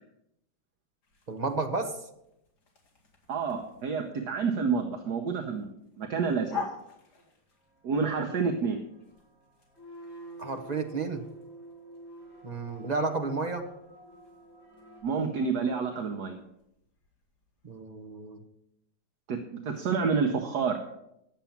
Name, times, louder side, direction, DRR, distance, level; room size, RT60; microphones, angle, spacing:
sound 1, 1.0-17.8, left 5 dB, 60° left, 2.7 m, -48 dB
voice 1, 1.3-2.0 10.4-11.2 12.4-13.6 17.6-18.4, right 3 dB, 30° right, 5 dB, 0.8 m, -32 dB
voice 2, 3.3-6.6 7.8-8.8 15.0-16.4 19.3-20.8, right 5 dB, 65° right, 5 dB, 1.4 m, -29 dB
sound 2, 7.8-15.0, right 1 dB, ahead, 4.9 m, -49 dB
10.5 x 7.4 x 7.1 m, 0.81 s
omnidirectional pair, 2.0 m